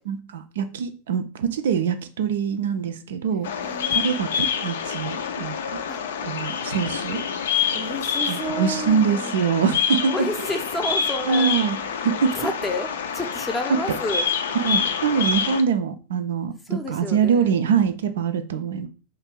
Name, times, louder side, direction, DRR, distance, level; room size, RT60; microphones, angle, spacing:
voice 1, 0.1-3.5 3.9-5.8 6.2-7.2 8.3-10.3 11.3-11.8 12.0-12.3 13.7-14.0 14.5-18.9, right 6 dB, 60° right, 9 dB, 0.4 m, -24 dB
Bird vocalization bird call bird song, 3.4-15.6, left 7 dB, 60° left, 0.4 m, -27 dB
voice 2, 3.6-4.1 5.9-6.0 7.7-9.4 10.1-11.5 12.3-12.9 13.1-14.2 16.7-17.5, left 1 dB, 10° left, 6 dB, 0.6 m, -30 dB
2.9 x 2.5 x 4.3 m, 0.36 s
figure-of-eight pair, 90°, 0 cm